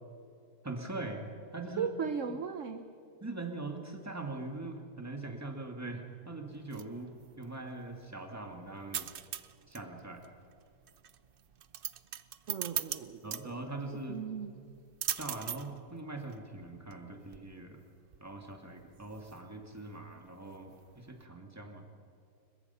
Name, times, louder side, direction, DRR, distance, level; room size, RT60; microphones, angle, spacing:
voice 1, 0.6-1.3 1.5-1.9 3.2-9.1 9.7-10.2 13.2-14.2 15.2-17.8 18.2-22.0, right 2 dB, 10° right, 3 dB, 2.0 m, -42 dB
voice 2, 1.8-2.8 12.5-13.6 14.1-14.5, right 6 dB, 55° right, 9 dB, 1.1 m, -37 dB
sound 1, 6.5-21.2, right 9 dB, 70° right, 0.5 m, -43 dB
22.5 x 21.0 x 5.7 m, 2.7 s
omnidirectional pair, 1.8 m